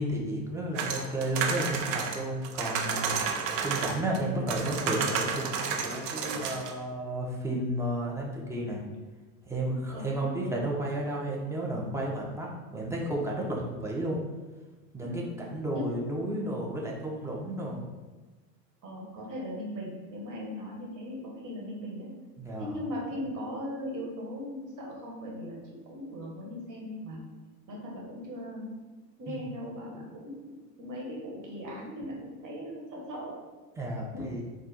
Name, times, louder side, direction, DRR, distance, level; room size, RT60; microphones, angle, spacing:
voice 1, 0.0-3.1 3.6-8.8 9.5-14.2 14.9-17.8 22.4-22.7 29.3-29.4 33.8-34.4, right 1 dB, 5° right, -3 dB, 0.8 m, -32 dB
sound 1, 0.7-4.2 4.5-6.7, right 6 dB, 70° right, 0.8 m, -31 dB
voice 2, 9.9-10.4 15.0-15.3 15.7-15.9 18.8-22.1 22.6-27.2 27.7-28.7 29.2-33.3 34.1-34.3, left 1 dB, 40° right, -2 dB, 1.5 m, -38 dB
4.2 x 2.4 x 4.1 m, 1.2 s
hypercardioid pair, 85°, 50 cm